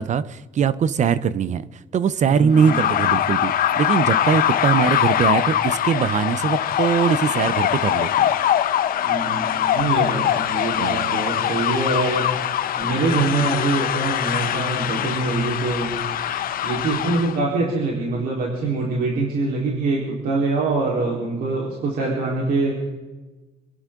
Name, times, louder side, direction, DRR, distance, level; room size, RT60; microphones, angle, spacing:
voice 1, 0.0-1.7 1.9-8.3 10.8-11.1, right 7 dB, 45° right, 16 dB, 0.8 m, -21 dB
voice 2, 2.2-2.9 9.0-12.3 12.7-16.0 16.6-22.9, right 3 dB, 60° right, -3 dB, 4.1 m, -24 dB
sound 1, 2.5-17.4, left 10 dB, 60° left, 0.9 m, -22 dB
27.0 x 11.0 x 3.8 m, 1.2 s
cardioid pair, 110°, 17 cm